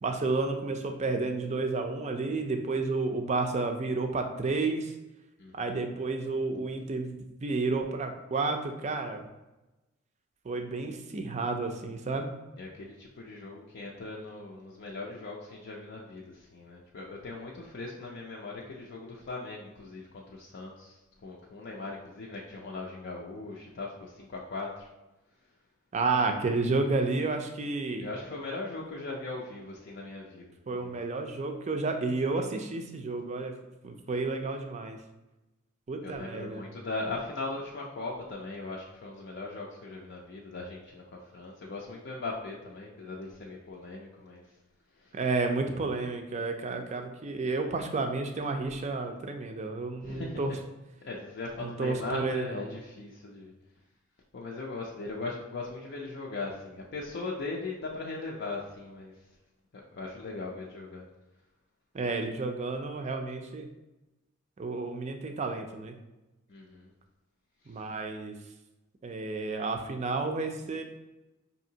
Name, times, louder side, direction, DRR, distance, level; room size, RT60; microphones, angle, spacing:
voice 1, 0.0-4.9 5.5-7.1 7.4-9.3 10.4-12.3 25.9-28.1 30.7-33.6 33.8-35.0 35.9-36.6 45.1-50.6 51.6-52.6 61.9-63.7 64.6-66.0 67.7-68.3 69.0-70.8, right 3 dB, 35° right, 5 dB, 0.4 m, -31 dB
voice 2, 12.6-24.9 28.0-31.0 36.0-44.4 45.0-45.2 50.0-50.6 51.0-53.5 54.3-59.1 59.7-61.0 66.5-66.9, left 3 dB, 55° left, -2 dB, 0.5 m, -39 dB
5.1 x 2.8 x 2.7 m, 1.0 s
head